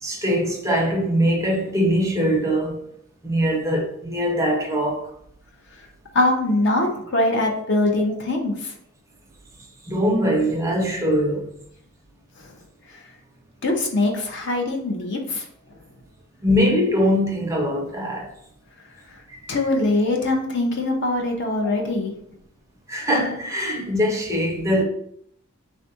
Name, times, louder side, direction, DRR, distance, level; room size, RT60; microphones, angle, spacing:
voice 1, 0.0-2.8 3.2-5.1 9.8-11.5 16.4-18.3 19.3-19.6 22.9-24.8, equal, 15° right, 0.6 m, -22 dB
voice 2, 6.1-8.7 13.6-15.5 19.5-22.1, left 2 dB, 55° left, 0.7 m, -22 dB
3.4 x 2.4 x 4.1 m
head